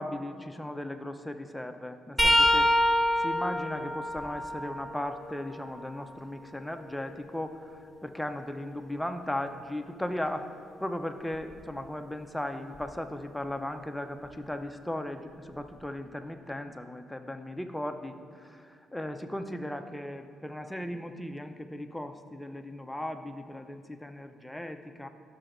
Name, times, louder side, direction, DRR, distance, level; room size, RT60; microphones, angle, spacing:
voice 1, 0.0-2.7 3.2-10.5 10.8-25.1, left 1 dB, 5° left, 7 dB, 0.5 m, -37 dB
sound 1, 2.2-5.9 6.5-8.4 11.3-11.5 12.7-12.9 14.2-14.3, equal, 10° right, 1.4 m, -28 dB
12.0 x 6.7 x 2.6 m, 2.1 s
cardioid pair, 90°, 0 cm